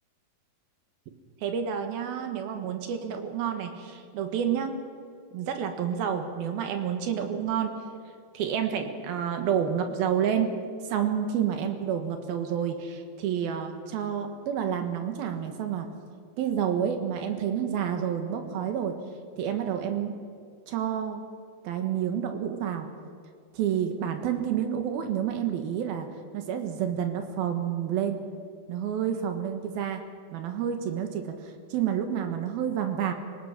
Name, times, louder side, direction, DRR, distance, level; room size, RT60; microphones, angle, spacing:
voice 1, 1.4-4.8 5.3-7.8 8.3-10.5 10.8-15.9 16.4-19.0 19.4-20.2 20.7-21.2 21.6-22.9 23.5-26.1 26.3-28.2 28.7-30.0 30.3-33.1, right 8 dB, 70° right, 6 dB, 3.1 m, -29 dB
26.0 x 18.5 x 5.9 m, 2.2 s
omnidirectional pair, 4.8 m